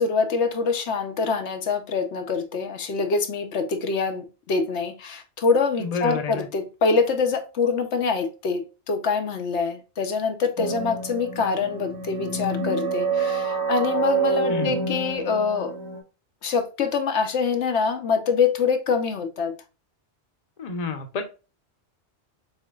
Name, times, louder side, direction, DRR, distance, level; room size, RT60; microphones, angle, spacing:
voice 1, 0.0-15.7 16.4-19.5, left 5 dB, 80° left, 1.1 m, -25 dB
voice 2, 5.8-6.5 14.5-14.7 20.6-21.2, left 5 dB, 40° left, 0.8 m, -29 dB
sound 1, 10.6-16.0, right 4 dB, 65° right, 1.7 m, -27 dB
6.7 x 2.9 x 2.3 m
omnidirectional pair, 1.2 m